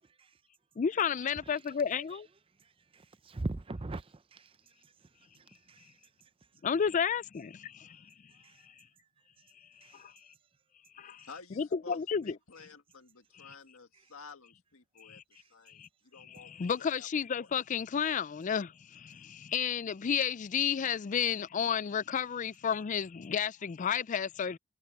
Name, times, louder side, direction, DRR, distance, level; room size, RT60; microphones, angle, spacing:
voice 1, 0.8-2.3 6.6-8.1 9.9-10.1 11.0-11.3 11.6-12.3 13.4-13.5 15.0-15.2 15.7-15.9 16.3-24.6, left 7 dB, 35° left, 0.3 m, -32 dB
voice 2, 2.9-4.5 5.7-5.9 8.4-8.6 9.8-10.0, right 2 dB, 25° right, 0.5 m, -40 dB
voice 3, 11.0-15.2 15.5-17.5, left 4 dB, 85° left, 1.8 m, -52 dB
head